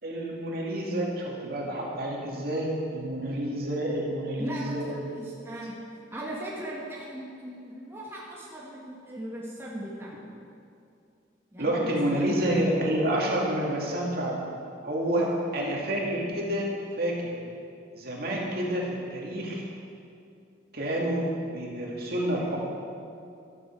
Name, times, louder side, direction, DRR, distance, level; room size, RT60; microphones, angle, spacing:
voice 1, 0.0-5.0 11.6-14.4 14.8-16.7 17.0-17.3 17.9-19.6 20.7-21.3 21.5-22.6, right 1 dB, 50° right, -3 dB, 2.4 m, -29 dB
voice 2, 4.4-5.7 6.1-10.1 11.5-12.2 15.2-15.4, right 1 dB, 15° right, -5 dB, 1.6 m, -38 dB
14.0 x 12.5 x 4.7 m, 2.5 s
head